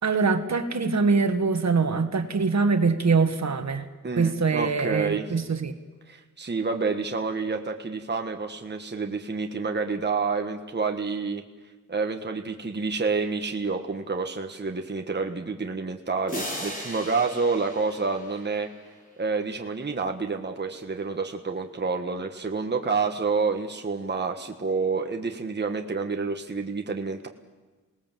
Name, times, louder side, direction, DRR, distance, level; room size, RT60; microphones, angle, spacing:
voice 1, 0.0-3.9 4.2-5.7, right 4 dB, 60° right, 8 dB, 1.7 m, -23 dB
voice 2, 4.0-5.3 6.1-11.4 11.9-18.7 19.2-27.3, right 4 dB, 35° right, 4 dB, 1.4 m, -28 dB
sound 1, 16.3-19.0, equal, 25° left, 4.9 m, -37 dB
27.5 x 19.5 x 7.5 m, 1.3 s
wide cardioid pair, 110°, 32 cm